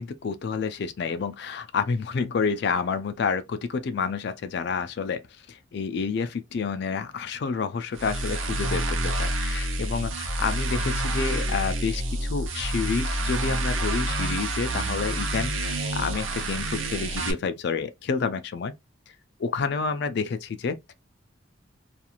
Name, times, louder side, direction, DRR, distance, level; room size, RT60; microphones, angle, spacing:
voice 1, 0.0-5.2 5.5-18.7 19.4-20.9, left 5 dB, 55° left, 0.4 m, -29 dB
sound 1, 7.9-17.3, right 1 dB, 80° right, 0.7 m, -28 dB
2.4 x 2.4 x 2.9 m
head